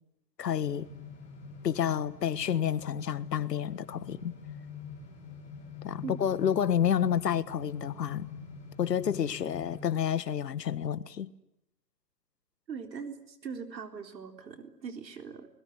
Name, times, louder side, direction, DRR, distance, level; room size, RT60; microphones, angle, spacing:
voice 1, 0.4-0.9 1.6-4.3 5.8-8.3 8.8-11.3, left 9 dB, 75° left, 1.6 m, -29 dB
sound 1, 0.6-9.9, left 6 dB, 15° left, 7.7 m, -45 dB
voice 2, 12.7-15.5, right 6 dB, 90° right, 4.0 m, -41 dB
28.5 x 21.0 x 9.3 m
hypercardioid pair, 170°, 49 cm